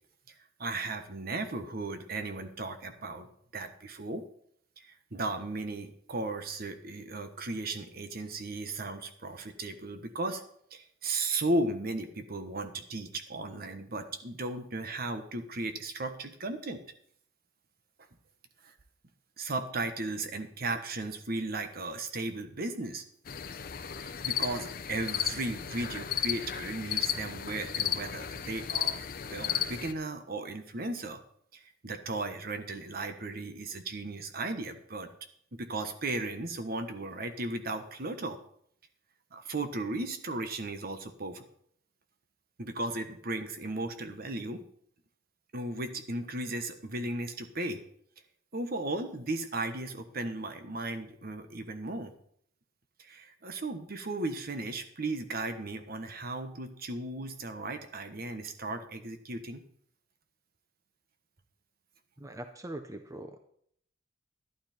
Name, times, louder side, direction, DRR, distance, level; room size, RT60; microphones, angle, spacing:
voice 1, 0.6-4.2 4.8-10.4 10.7-16.8 18.6-18.7 19.4-23.0 23.9-29.0 29.3-31.2 31.5-35.1 35.5-38.4 39.3-41.4 42.6-44.6 45.5-47.8 48.5-52.1 53.0-59.6, right 2 dB, 55° right, 8 dB, 1.2 m, -36 dB
sound 1, 23.3-29.9, left 9 dB, 50° left, 0.7 m, -34 dB
voice 2, 62.2-63.4, right 1 dB, 15° right, 7 dB, 0.7 m, -42 dB
12.0 x 11.5 x 4.4 m, 0.67 s
head